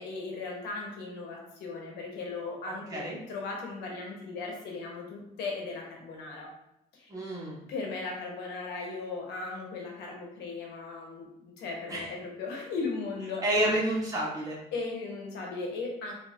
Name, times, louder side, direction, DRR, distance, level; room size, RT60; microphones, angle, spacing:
voice 1, 0.0-6.5 6.9-7.1 7.7-13.7 14.7-16.1, left 3 dB, 80° left, 0 dB, 1.0 m, -37 dB
voice 2, 2.7-3.2 7.1-7.6 11.9-12.0 13.4-14.6, right 1 dB, 20° right, -6 dB, 1.4 m, -29 dB
4.3 x 2.7 x 2.4 m, 0.80 s
cardioid pair, 110°, 17 cm